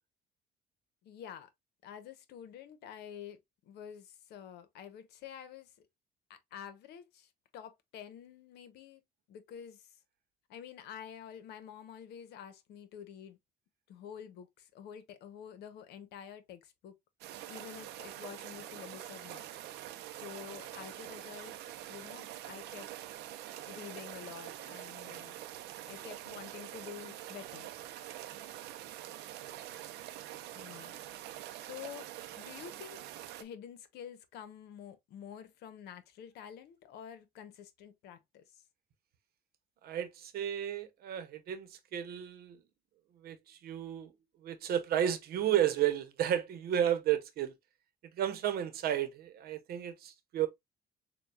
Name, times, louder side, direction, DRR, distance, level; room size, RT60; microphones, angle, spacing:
voice 1, 1.0-1.5 1.8-5.9 6.3-9.0 9.3-10.0 10.5-13.4 13.9-16.9 17.3-19.5 20.1-21.6 21.9-22.9 23.6-25.4 25.9-27.7 30.5-31.0 31.5-32.1 32.4-33.0 33.4-38.6, left 9 dB, 80° left, 0.8 m, -49 dB
sound 1, 17.2-33.4, right 13 dB, 85° right, 0.5 m, -45 dB
voice 2, 39.8-42.6 43.2-44.1 44.4-47.5 48.1-50.5, right 10 dB, 65° right, 0.9 m, -33 dB
6.8 x 2.3 x 2.3 m
cardioid pair, 110°, 17 cm